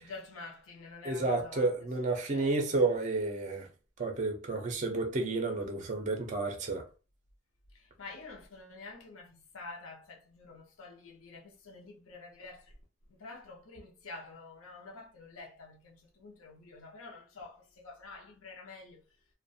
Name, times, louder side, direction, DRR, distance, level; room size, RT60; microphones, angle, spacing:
voice 1, 0.0-1.7 2.3-2.6 7.7-12.7 13.2-19.0, left 3 dB, 80° left, 0.6 m, -48 dB
voice 2, 1.0-3.7 4.0-6.8, right 3 dB, 35° right, 0.4 m, -31 dB
2.4 x 2.1 x 2.6 m
head